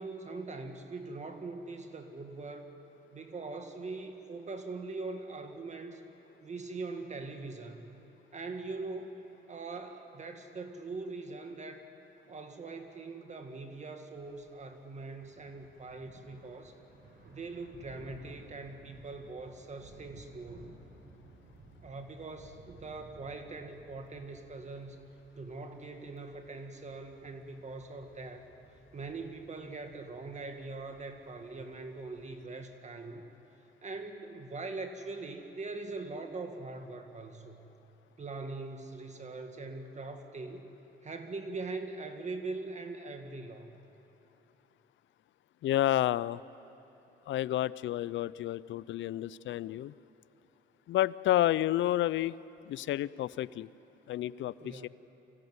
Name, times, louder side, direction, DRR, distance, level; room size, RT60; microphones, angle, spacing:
voice 1, 0.0-2.7 3.1-6.1 6.4-7.9 8.3-9.2 9.5-11.9 12.3-16.7 17.3-20.8 21.8-25.0 25.4-28.5 28.9-33.3 33.8-37.6 38.2-40.6 41.0-43.7 54.6-54.9, right 3 dB, 35° right, 6 dB, 1.8 m, -42 dB
Thunder / Rain, 14.1-32.5, right 2 dB, 55° right, 4.2 m, -57 dB
voice 2, 45.6-46.4 47.3-49.9 50.9-52.4 52.7-53.7 54.1-54.9, left 13 dB, 70° left, 19 dB, 0.5 m, -30 dB
24.5 x 16.0 x 9.6 m, 3.0 s
cardioid pair, 90°, 20 cm